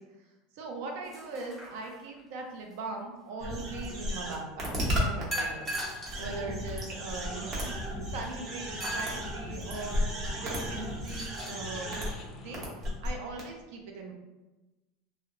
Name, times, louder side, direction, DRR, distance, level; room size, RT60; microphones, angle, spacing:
voice 1, 0.5-7.7 8.1-10.1 10.3-12.0 12.4-14.1, right 3 dB, 70° right, 2 dB, 0.5 m, -40 dB
sound 1, 1.0-2.2 5.3-6.2 6.9-7.0 8.8-9.2 10.8-11.6, right 1 dB, 5° right, 0.8 m, -37 dB
sound 2, 3.4-5.2 5.6-12.1 12.5-13.1 13.4-13.5, equal, 35° right, 0.8 m, -34 dB
sound 3, 4.5-12.7, left 4 dB, 40° left, 0.3 m, -50 dB
2.7 x 2.1 x 2.5 m, 1.1 s
supercardioid pair, 150°, 0 cm